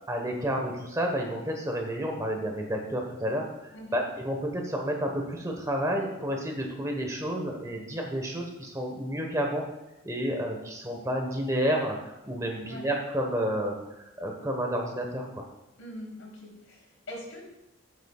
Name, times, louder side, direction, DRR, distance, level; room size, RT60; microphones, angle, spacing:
voice 1, 0.1-9.6 10.0-15.5, equal, 15° right, 2 dB, 1.3 m, -30 dB
voice 2, 15.8-17.4, left 1 dB, 85° left, -3 dB, 3.5 m, -42 dB
14.5 x 8.1 x 2.4 m, 0.93 s
head